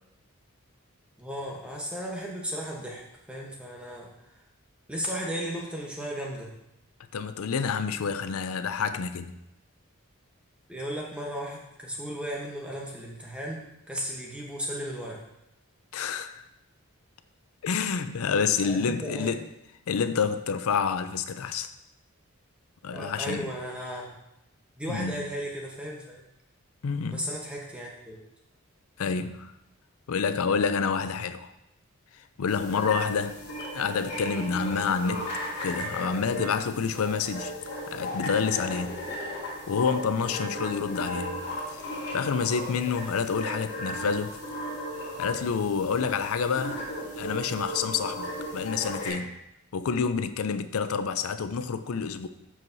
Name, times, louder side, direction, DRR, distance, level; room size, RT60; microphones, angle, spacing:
voice 1, 1.2-3.0 3.3-4.1 4.9-6.5 10.7-15.2 18.6-19.3 22.9-24.2 24.8-26.2 27.1-28.3, equal, 5° right, 0.9 m, -35 dB
voice 2, 7.1-9.3 15.9-16.4 17.6-19.4 19.9-21.7 22.8-23.5 24.9-25.3 26.8-27.2 29.0-29.5 30.1-31.5 32.4-33.4 33.7-35.3 35.6-37.5 37.9-38.9 39.7-41.4 41.7-41.8 42.1-44.4 45.2-46.8 47.2-49.3 49.7-52.3, left 6 dB, 75° left, 0.4 m, -28 dB
sound 1, 32.5-49.1, left 1 dB, 55° left, 2.7 m, -36 dB
12.5 x 4.7 x 2.7 m
head